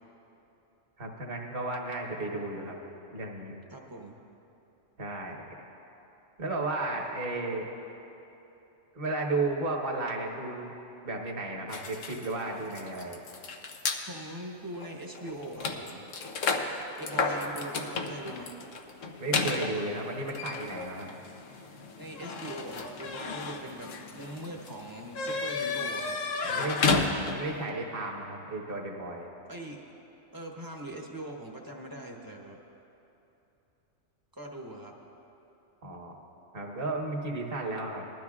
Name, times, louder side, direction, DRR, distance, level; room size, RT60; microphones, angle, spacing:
voice 1, 1.0-2.8 3.1-3.5 5.0-5.4 6.4-7.7 8.9-10.7 11.0-13.2 19.2-21.1 26.4-26.8 27.2-29.3 35.8-36.2 36.5-38.0, right 2 dB, 45° right, 0 dB, 1.4 m, -33 dB
voice 2, 3.7-4.2 14.1-16.1 17.0-18.6 21.9-26.2 26.5-26.7 29.4-29.8 30.3-32.6 34.3-34.9, right 1 dB, 20° right, 0 dB, 1.0 m, -41 dB
sound 1, 11.7-14.0 14.7-14.9 15.1-27.6, left 4 dB, 75° left, 1.2 m, -33 dB
20.5 x 12.5 x 2.4 m, 3.0 s
omnidirectional pair, 1.3 m